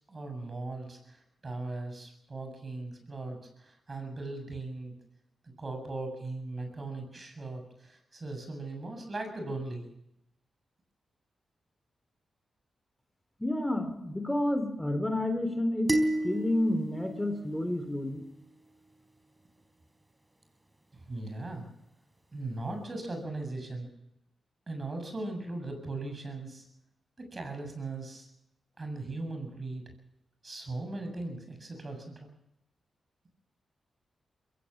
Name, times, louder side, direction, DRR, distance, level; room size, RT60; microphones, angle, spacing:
voice 1, 0.1-4.9 5.6-9.9 20.9-21.7 22.3-23.9 24.7-26.6 27.3-28.3 28.8-29.8 30.4-32.3, right 2 dB, 45° right, 5 dB, 7.6 m, -38 dB
voice 2, 13.4-15.9 16.2-18.2, left 1 dB, 10° left, 7 dB, 3.3 m, -30 dB
sound 1, 15.9-18.3, right 1 dB, 20° right, 4.1 m, -32 dB
22.0 x 16.5 x 7.3 m, 0.81 s
supercardioid pair, 45°, 0 cm